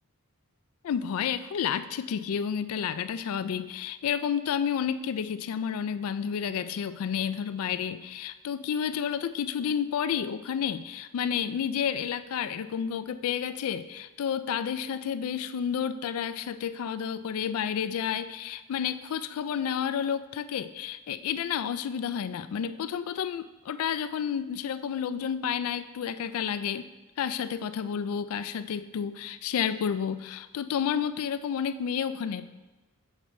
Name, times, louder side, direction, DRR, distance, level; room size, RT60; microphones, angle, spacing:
voice 1, 0.8-26.9 27.2-32.5, left 8 dB, 70° left, 13 dB, 0.3 m, -30 dB
6.6 x 5.8 x 3.1 m, 1.2 s
head